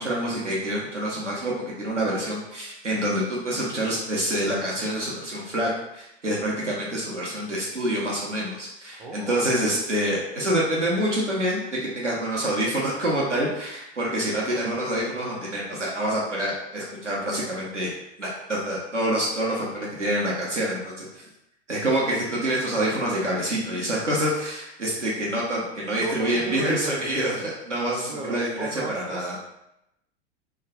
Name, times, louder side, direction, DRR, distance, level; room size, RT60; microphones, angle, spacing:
voice 1, 0.0-17.9 18.2-21.2 21.7-29.4, right 1 dB, 85° right, -4 dB, 0.9 m, -27 dB
voice 2, 9.0-9.7 25.9-27.5 28.1-29.4, right 2 dB, 10° right, 0 dB, 0.3 m, -35 dB
3.1 x 2.2 x 3.7 m, 0.83 s
figure-of-eight pair, 90°, 35 cm